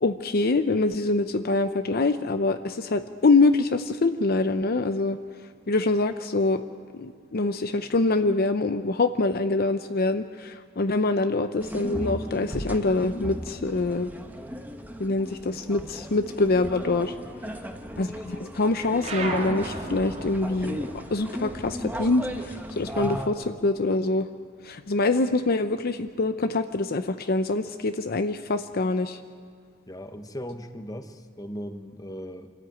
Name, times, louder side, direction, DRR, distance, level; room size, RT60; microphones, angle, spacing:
voice 1, 0.0-5.2 5.7-6.6 6.9-14.1 15.0-17.1 18.0-24.3 24.6-29.2, left 3 dB, 50° left, 9 dB, 0.6 m, -25 dB
sound 1, 11.6-23.3, equal, 10° right, 1.3 m, -36 dB
voice 2, 17.3-17.8 29.9-32.5, equal, 20° left, 8 dB, 1.1 m, -38 dB
sound 2, 19.0-23.9 24.2-25.6, right 2 dB, 35° right, 2.2 m, -38 dB
25.0 x 14.0 x 9.2 m, 2.2 s
head